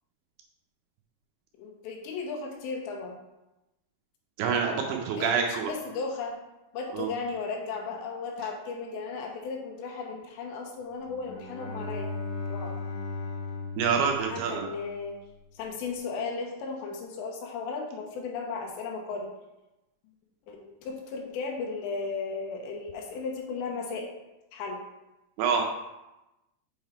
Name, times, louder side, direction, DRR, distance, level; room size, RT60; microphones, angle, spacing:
voice 1, 1.6-3.2 5.2-6.4 6.7-12.1 12.5-12.7 14.1-15.2 15.5-19.3 20.5-24.1 24.5-24.8, left 4 dB, 90° left, 0 dB, 3.2 m, -35 dB
voice 2, 4.4-5.7 6.9-7.1 13.8-14.7 25.4-25.6, right 6 dB, 80° right, 2 dB, 2.4 m, -26 dB
Bowed string instrument, 11.1-15.1, left 3 dB, 65° left, 1.7 m, -37 dB
7.1 x 3.8 x 4.5 m, 0.98 s
omnidirectional pair, 5.0 m